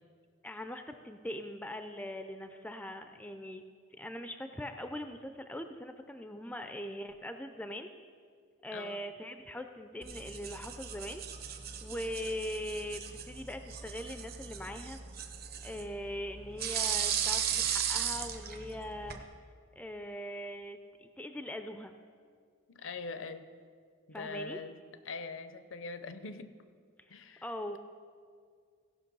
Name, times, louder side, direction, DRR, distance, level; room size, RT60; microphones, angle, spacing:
voice 1, 0.4-3.6 4.0-7.9 8.6-11.2 11.8-15.0 15.6-19.2 19.8-21.9 24.1-24.6 27.0-27.1 27.4-27.8, equal, 5° left, 7 dB, 0.3 m, -41 dB
sound 1, 10.0-19.2, right 8 dB, 45° right, 0.7 m, -37 dB
voice 2, 22.7-23.4 24.1-24.8 25.1-26.5 27.1-27.4, left 4 dB, 65° left, 10 dB, 0.5 m, -42 dB
16.5 x 5.9 x 5.3 m, 2.1 s
head